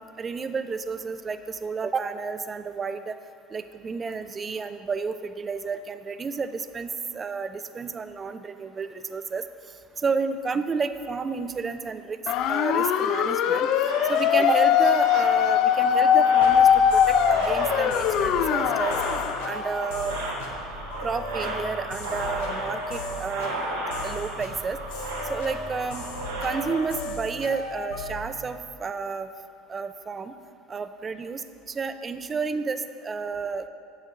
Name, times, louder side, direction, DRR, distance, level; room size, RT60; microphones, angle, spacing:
voice 1, 0.0-3.2 3.5-9.4 10.0-12.2 12.5-13.7 14.1-19.0 19.4-20.2 21.0-23.6 24.0-24.8 25.3-26.1 26.4-29.3 29.7-30.3 30.7-33.7, right 5 dB, 30° right, 11 dB, 0.4 m, -31 dB
sound 1, 12.3-19.5, left 8 dB, 60° left, 0.3 m, -21 dB
sound 2, 13.9-26.9, right 2 dB, 80° right, 1.2 m, -35 dB
sound 3, 16.4-28.3, left 1 dB, 80° left, 0.9 m, -36 dB
7.4 x 6.2 x 3.7 m, 2.5 s
hypercardioid pair, 75°, 0 cm